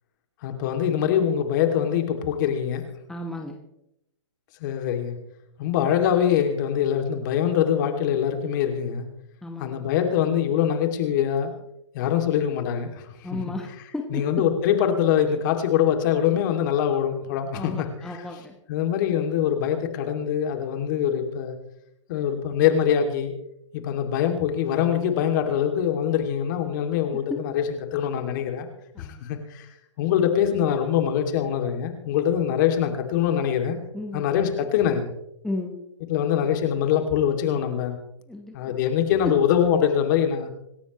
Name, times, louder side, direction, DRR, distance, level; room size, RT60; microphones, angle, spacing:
voice 1, 0.4-2.8 4.6-5.2 5.6-9.1 9.6-11.5 11.9-13.0 13.3-13.4 14.1-18.2 18.7-21.6 22.1-23.3 23.7-28.7 29.0-29.6 30.0-33.8 34.1-35.1 36.1-38.0 38.5-40.5, left 9 dB, 40° left, 5 dB, 2.6 m, -23 dB
voice 2, 3.1-3.6 9.4-9.8 13.2-13.7 13.9-14.2 17.5-18.5 29.0-29.1 33.9-34.3 35.4-35.8 38.3-38.5, left 2 dB, 5° left, 2 dB, 1.3 m, -33 dB
26.5 x 12.5 x 3.1 m, 0.81 s
hypercardioid pair, 140°, 16 cm